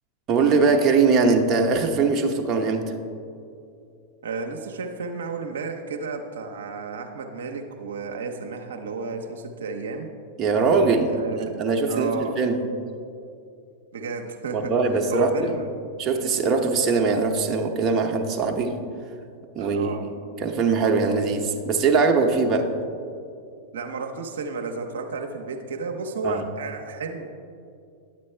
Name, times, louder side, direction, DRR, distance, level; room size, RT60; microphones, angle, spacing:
voice 1, 0.3-2.9 10.4-12.6 14.5-15.6 16.0-18.8 19.5-20.0 20.4-22.7 26.2-26.4, right 4 dB, 35° right, 4 dB, 0.8 m, -21 dB
voice 2, 4.2-10.1 11.1-11.5 11.9-12.4 13.9-14.7 15.1-15.7 19.6-20.1 23.7-27.3, right 4 dB, 80° right, 3 dB, 0.6 m, -32 dB
9.9 x 7.6 x 3.2 m, 2.5 s
hypercardioid pair, 100°, 0 cm